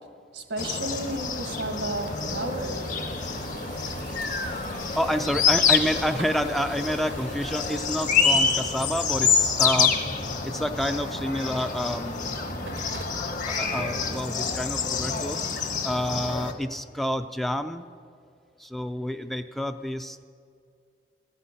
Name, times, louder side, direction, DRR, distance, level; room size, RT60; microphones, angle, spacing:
voice 1, 0.3-2.8, right 1 dB, 90° right, 6 dB, 1.4 m, -32 dB
sound 1, 0.6-16.5, left 5 dB, 50° left, 1.1 m, -27 dB
sound 2, 0.8-14.1, right 3 dB, 70° right, 0.8 m, -44 dB
voice 2, 5.0-10.0 10.4-12.4 13.5-15.5 15.8-17.9 18.6-20.3, equal, ahead, 8 dB, 0.3 m, -29 dB
14.0 x 5.7 x 9.6 m, 2.3 s
head